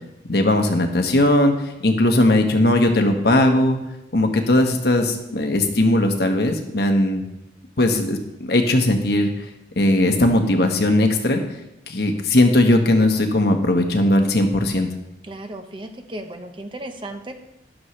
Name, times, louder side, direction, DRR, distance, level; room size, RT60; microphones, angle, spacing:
voice 1, 0.3-1.5 1.8-3.8 4.1-7.2 7.8-9.5 9.8-11.4 11.9-14.9, left 1 dB, 60° left, 4 dB, 1.3 m, -18 dB
voice 2, 15.2-17.3, right 1 dB, 25° right, 6 dB, 0.9 m, -35 dB
12.5 x 11.0 x 3.2 m, 0.86 s
head